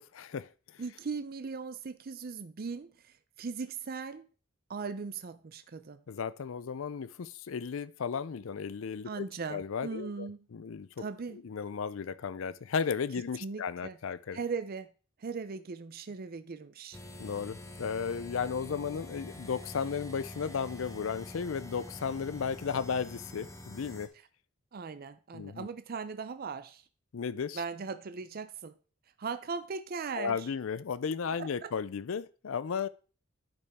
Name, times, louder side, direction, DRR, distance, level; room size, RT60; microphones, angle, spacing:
voice 1, 0.0-0.8 6.1-10.9 11.3-14.4 17.2-24.1 25.3-25.7 27.1-27.6 30.1-32.9, left 6 dB, 70° left, 0.5 m, -35 dB
voice 2, 0.8-4.3 4.7-6.0 9.0-10.4 11.0-11.4 13.4-14.0 14.3-14.9 15.2-17.0 24.7-26.8 27.5-28.7 29.2-30.5 31.3-31.7, right 5 dB, 45° right, 0.5 m, -39 dB
sound 1, 16.9-24.1, left 1 dB, 15° left, 0.8 m, -46 dB
10.5 x 5.4 x 3.5 m
head